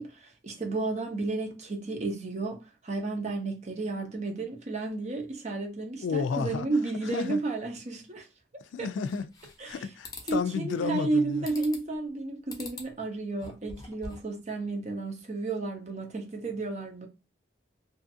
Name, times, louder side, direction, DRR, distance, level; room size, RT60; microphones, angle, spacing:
voice 1, 0.0-2.6 2.8-8.3 8.8-8.9 9.6-9.9 10.3-17.1, right 3 dB, 40° right, 0.7 m, -32 dB
voice 2, 6.0-6.7 7.0-7.4 8.7-9.3 9.6-11.5, left 5 dB, 85° left, 0.3 m, -31 dB
sound 1, 9.1-9.7 10.0-10.4 11.5-12.0 12.5-12.9 13.3-14.3, left 3 dB, 20° left, 0.5 m, -44 dB
2.6 x 2.5 x 2.5 m
head